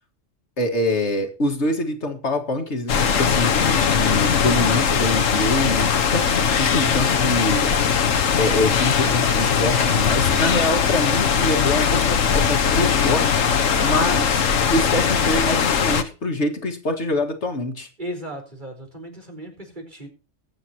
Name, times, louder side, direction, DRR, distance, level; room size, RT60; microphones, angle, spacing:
voice 1, 0.6-7.7 8.4-13.4 13.8-14.5 14.7-17.9, left 1 dB, 60° left, 5 dB, 2.1 m, -25 dB
sound 1, 2.9-16.0, left 6 dB, 80° left, 1.5 m, -20 dB
voice 2, 18.0-20.1, equal, 35° right, 2 dB, 4.7 m, -36 dB
22.0 x 8.4 x 2.9 m, 0.36 s
omnidirectional pair, 1.3 m